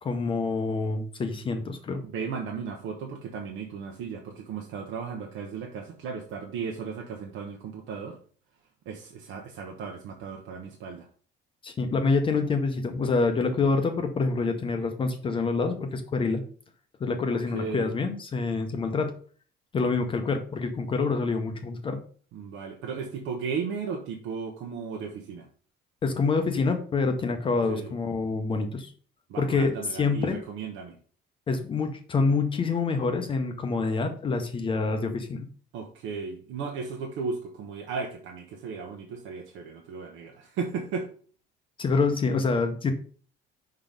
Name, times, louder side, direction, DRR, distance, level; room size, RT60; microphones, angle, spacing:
voice 1, 0.0-2.0 11.6-16.4 17.0-19.1 19.7-22.0 26.0-28.9 29.4-30.4 31.5-35.5 41.8-42.9, left 4 dB, 25° left, 5 dB, 0.7 m, -26 dB
voice 2, 2.0-8.2 8.9-11.1 17.5-17.9 22.3-25.5 27.7-27.9 29.3-30.9 35.7-41.1, right 5 dB, 70° right, 1 dB, 1.0 m, -35 dB
5.7 x 3.9 x 5.1 m, 0.44 s
cardioid pair, 170°, 21 cm